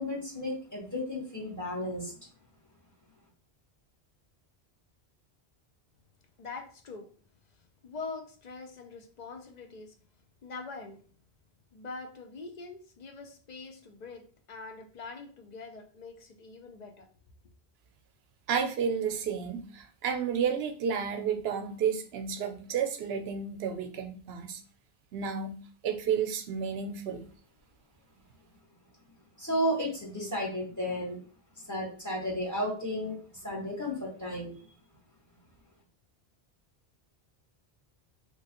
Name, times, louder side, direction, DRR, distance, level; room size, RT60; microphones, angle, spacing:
voice 1, 0.0-2.1 29.4-31.2 31.6-34.6, equal, 15° left, 1.3 m, -33 dB
voice 2, 6.4-7.1 7.6-10.0 10.4-11.0 11.7-17.1, left 4 dB, 50° left, 0.6 m, -44 dB
voice 3, 18.5-24.6 25.1-25.6 25.8-27.2, right 7 dB, 70° right, 0.8 m, -31 dB
3.1 x 2.9 x 2.9 m
omnidirectional pair, 1.1 m